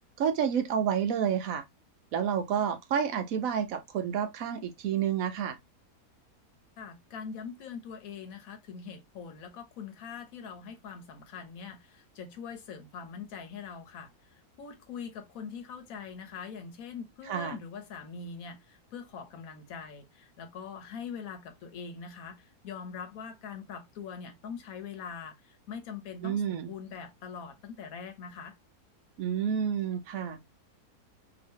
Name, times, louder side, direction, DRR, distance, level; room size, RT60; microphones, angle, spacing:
voice 1, 0.2-1.6 2.1-5.6 17.3-17.6 26.2-26.7 29.2-30.4, right 8 dB, 65° right, 0.9 m, -29 dB
voice 2, 6.8-28.5, left 6 dB, 65° left, 1.2 m, -43 dB
2.8 x 2.8 x 3.6 m
omnidirectional pair, 1.7 m